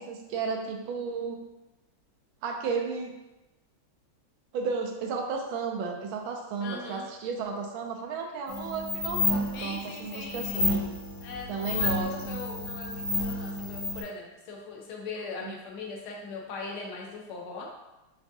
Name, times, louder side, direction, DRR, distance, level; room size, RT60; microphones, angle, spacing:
voice 1, 0.0-1.4 2.4-3.1 4.5-10.9 11.5-12.4 15.4-15.5, right 5 dB, 80° right, 3 dB, 1.4 m, -33 dB
voice 2, 6.6-7.1 9.5-10.7 11.2-17.7, left 3 dB, 85° left, -1 dB, 1.7 m, -40 dB
sound 1, 8.5-14.0, left 2 dB, 65° left, 1.6 m, -30 dB
5.0 x 3.4 x 2.7 m, 1.0 s
omnidirectional pair, 2.3 m